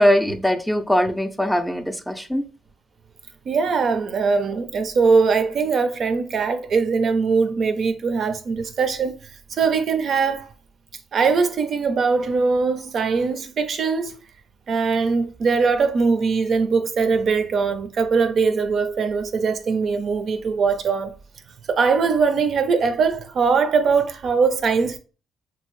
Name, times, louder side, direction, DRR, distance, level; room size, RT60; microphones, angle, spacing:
voice 1, 0.0-2.4, equal, ahead, 0.4 m, -21 dB
voice 2, 3.5-9.2 9.6-10.5 11.1-14.1 14.7-21.1 21.7-25.0, right 5 dB, 55° right, 0.4 m, -21 dB
2.7 x 2.6 x 3.0 m
cardioid pair, 90°, 0 cm